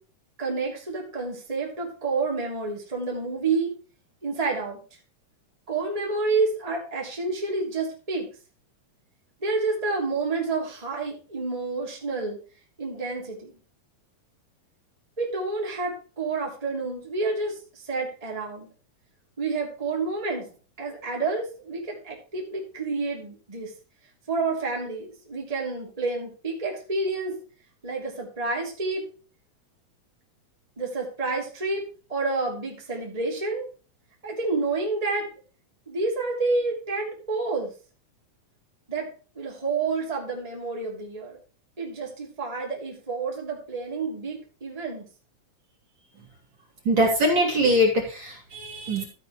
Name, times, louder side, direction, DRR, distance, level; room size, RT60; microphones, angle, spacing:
voice 1, 0.4-3.7 4.2-4.8 5.7-8.3 9.4-12.4 12.8-13.5 15.2-18.7 19.4-23.7 24.3-27.4 27.8-29.0 30.8-31.8 32.1-33.7 34.2-35.3 35.9-37.7 38.9-39.1 39.3-41.4 41.8-45.0, right 3 dB, 10° right, -2 dB, 3.0 m, -29 dB
voice 2, 46.9-49.0, equal, 40° right, -2 dB, 3.8 m, -22 dB
14.5 x 8.3 x 3.1 m, 0.37 s
omnidirectional pair, 3.3 m